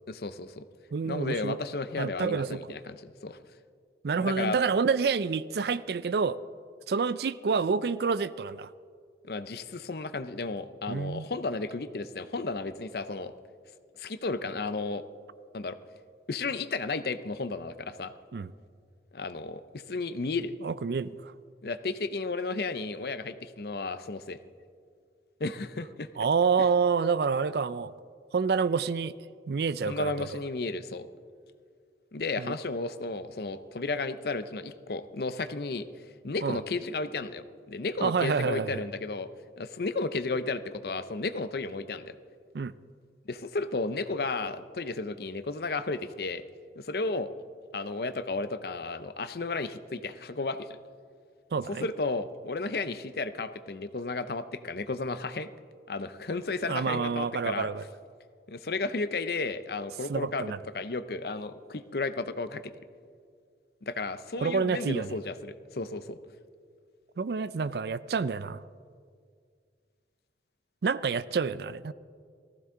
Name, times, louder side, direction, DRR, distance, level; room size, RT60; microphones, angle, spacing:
voice 1, 0.1-0.6 1.0-3.4 4.2-4.6 9.2-13.3 14.0-15.0 15.5-15.8 16.3-18.1 19.1-20.5 21.6-24.4 25.4-26.1 29.8-31.1 32.1-35.9 36.2-39.3 39.6-42.2 43.3-46.4 46.8-47.3 47.7-50.8 51.7-55.5 55.9-57.7 58.5-60.5 60.7-62.6 63.8-66.2, left 3 dB, 60° left, 12 dB, 0.6 m, -33 dB
voice 2, 0.9-1.6 2.0-2.6 4.0-6.4 6.9-8.7 10.9-11.2 18.3-18.5 20.6-21.3 26.2-27.9 28.3-29.1 29.5-30.4 32.4-32.5 36.4-36.6 38.0-38.8 42.5-42.8 51.5-51.9 56.7-57.8 60.1-60.6 64.4-65.1 67.2-68.6 70.8-71.9, right 5 dB, 65° right, 17 dB, 0.4 m, -28 dB
18.5 x 15.0 x 3.8 m, 2.1 s
head